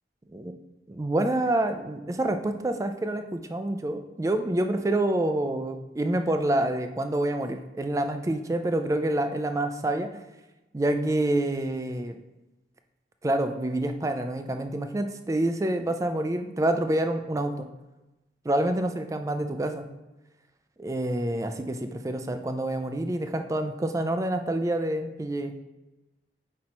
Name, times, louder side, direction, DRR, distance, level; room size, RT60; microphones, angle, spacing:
voice 1, 0.9-10.1 10.7-12.2 13.2-17.7 18.5-19.8 20.8-25.5, right 1 dB, 20° right, 6 dB, 0.4 m, -27 dB
5.1 x 4.3 x 4.2 m, 1.0 s
head